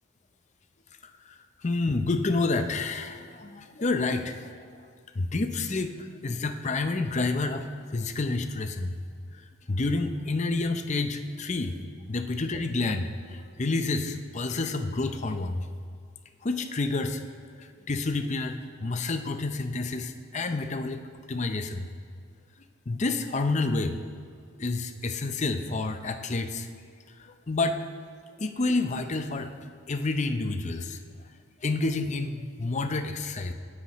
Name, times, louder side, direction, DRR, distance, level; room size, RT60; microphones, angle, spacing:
voice 1, 1.0-1.3 1.6-4.6 5.1-9.0 9.7-11.8 12.1-15.7 16.4-17.2 17.6-21.0 21.3-21.9 22.9-24.0 24.6-26.7 27.5-27.8 28.4-29.5 29.9-31.0 31.6-33.5, left 3 dB, 35° left, 8 dB, 0.6 m, -29 dB
18.0 x 9.9 x 3.1 m, 2.2 s
head